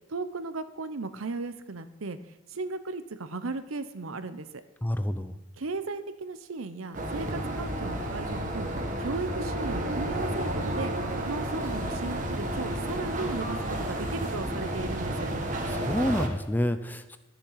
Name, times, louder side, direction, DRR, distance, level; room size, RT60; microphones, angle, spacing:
voice 1, 0.1-2.2 2.5-4.5 5.6-8.7 9.0-10.9 11.3-15.3, right 3 dB, 85° right, 12 dB, 0.8 m, -36 dB
voice 2, 4.8-5.3 15.7-17.2, left 1 dB, 10° left, 10 dB, 0.4 m, -28 dB
sound 1, 6.9-16.3, right 1 dB, 40° right, 1.4 m, -31 dB
12.0 x 7.0 x 5.7 m, 1.2 s
head